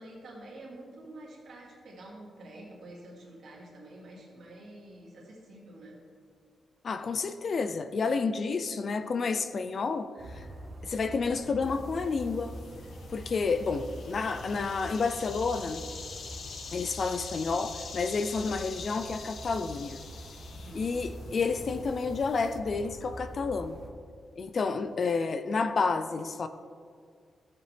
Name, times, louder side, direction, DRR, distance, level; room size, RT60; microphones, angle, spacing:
voice 1, 0.0-6.0 20.5-20.9 21.2-22.1, right 1 dB, 60° right, -4 dB, 2.7 m, -48 dB
voice 2, 6.8-10.5 10.8-12.5 13.1-15.8 16.7-20.0 20.7-23.8 24.4-26.5, left 4 dB, 40° left, 10 dB, 0.4 m, -30 dB
sound 1, 10.2-23.9, right 1 dB, 35° right, 1.2 m, -45 dB
sound 2, 11.6-22.6, left 5 dB, 60° left, 0.9 m, -46 dB
14.5 x 7.6 x 3.4 m, 2.1 s
wide cardioid pair, 175°, 0 cm